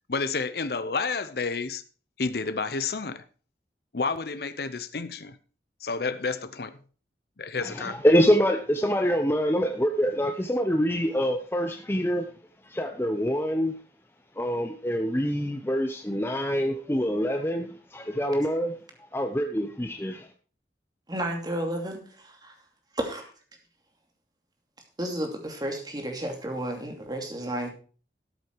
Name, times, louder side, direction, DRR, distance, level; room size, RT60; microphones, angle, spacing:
voice 1, 0.1-1.8 2.2-3.2 3.9-5.4 5.8-6.8 7.4-8.0, left 4 dB, 60° left, 0.7 m, -30 dB
voice 2, 7.6-12.3 12.6-13.8 14.4-18.8 19.1-20.3, equal, 15° left, 0.8 m, -25 dB
voice 3, 21.1-22.5 22.9-23.3 25.0-27.7, right 1 dB, 25° right, 2.6 m, -32 dB
13.5 x 8.1 x 4.7 m
head